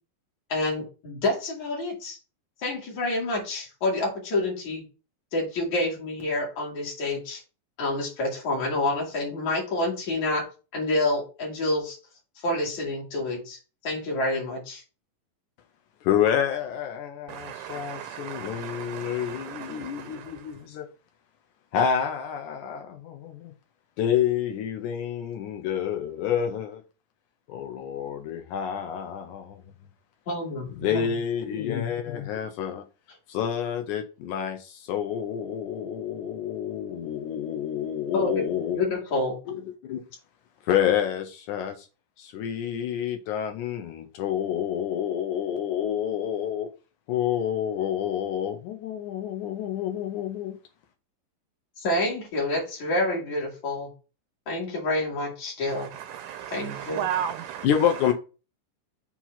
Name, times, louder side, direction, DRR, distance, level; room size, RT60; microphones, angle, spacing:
voice 1, 0.5-2.2 2.6-4.8 5.3-7.4 7.8-10.5 10.7-12.0 12.4-14.8 30.3-31.1 38.1-38.5 38.7-39.4 51.8-53.9 54.5-55.9 56.5-57.1, left 2 dB, 60° left, 3.1 m, -28 dB
voice 2, 16.0-20.9 21.7-23.5 24.0-26.8 27.5-29.6 30.8-32.8 33.3-38.9 39.5-40.0 40.6-41.9 42.2-46.7 47.1-50.6 57.6-58.1, left 9 dB, 75° left, 2.0 m, -28 dB
voice 3, 17.3-20.6 55.7-57.7, right 9 dB, 80° right, 1.9 m, -35 dB
7.2 x 2.9 x 5.7 m
omnidirectional pair, 3.9 m